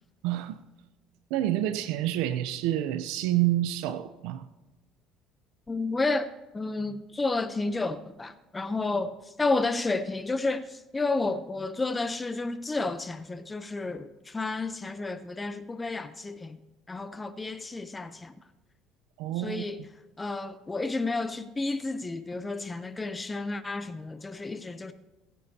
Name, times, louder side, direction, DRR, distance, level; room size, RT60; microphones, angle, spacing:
voice 1, 0.2-0.6 1.3-4.5 19.2-19.6, right 13 dB, 85° right, 0.6 m, -28 dB
voice 2, 5.7-9.1 9.4-16.6 16.9-18.3 19.4-19.8 20.2-24.9, left 3 dB, 15° left, 0.7 m, -31 dB
24.0 x 9.3 x 2.8 m
cardioid pair, 115°, 0 cm